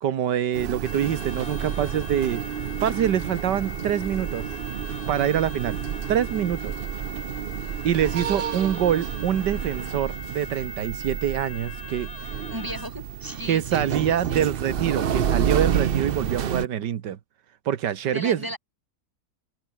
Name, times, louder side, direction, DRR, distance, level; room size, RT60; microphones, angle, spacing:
voice 1, 0.0-4.5 5.1-5.8 6.1-6.7 7.8-12.1 13.5-17.2 17.7-18.4, right 9 dB, 90° right, 1.8 m, -25 dB
sound 1, 0.5-16.7, right 8 dB, 50° right, 0.7 m, -30 dB
sound 2, 0.8-12.9, left 5 dB, 60° left, 2.5 m, -42 dB
voice 2, 12.5-14.4 18.1-18.6, right 1 dB, 10° right, 6.3 m, -35 dB
omnidirectional pair, 1.8 m